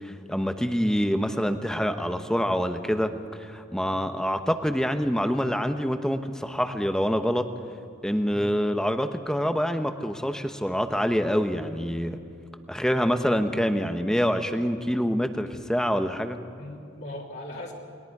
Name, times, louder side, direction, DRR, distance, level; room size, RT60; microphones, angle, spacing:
voice 1, 0.0-3.1 3.4-7.5 8.0-12.2 12.7-16.4, equal, 5° left, 7 dB, 1.0 m, -26 dB
voice 2, 16.5-17.7, left 1 dB, 55° left, -3 dB, 3.1 m, -39 dB
29.0 x 21.0 x 4.8 m, 2.7 s
head